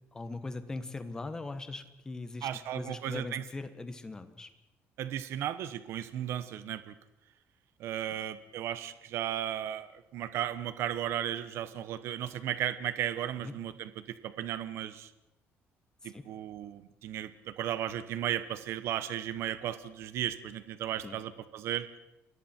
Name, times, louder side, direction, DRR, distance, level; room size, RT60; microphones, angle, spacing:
voice 1, 0.1-2.5 2.7-4.5 13.4-13.5 16.0-16.2 21.0-21.2, left 3 dB, 15° left, 10 dB, 1.3 m, -40 dB
voice 2, 2.4-3.4 5.0-7.0 7.8-15.1 16.0-21.9, right 11 dB, 60° right, 12 dB, 1.1 m, -35 dB
29.5 x 21.0 x 4.5 m, 0.92 s
cardioid pair, 180°, 5 cm